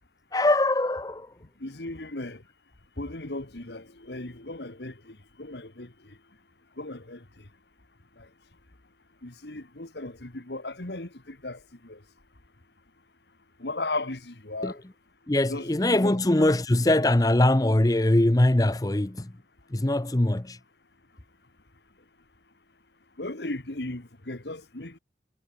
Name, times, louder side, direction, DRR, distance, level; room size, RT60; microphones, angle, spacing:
voice 1, 0.3-1.3 14.6-14.8 15.3-19.3 19.7-20.6, left 1 dB, 20° left, 0.7 m, -22 dB
voice 2, 1.6-2.4 3.0-5.9 6.8-7.2 8.2-8.3 9.2-12.0 13.6-14.8 15.5-16.2 23.2-25.0, left 2 dB, 70° left, 2.0 m, -36 dB
head